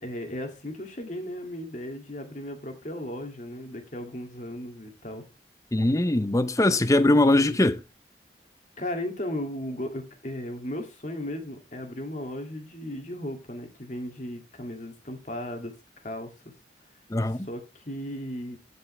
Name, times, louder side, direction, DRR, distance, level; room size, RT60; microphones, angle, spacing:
voice 1, 0.0-5.2 8.8-15.7 16.0-16.3 17.3-18.6, left 1 dB, 45° left, 2.1 m, -36 dB
voice 2, 5.7-7.8 17.1-17.5, left 1 dB, 20° left, 0.6 m, -21 dB
15.0 x 5.4 x 3.2 m
head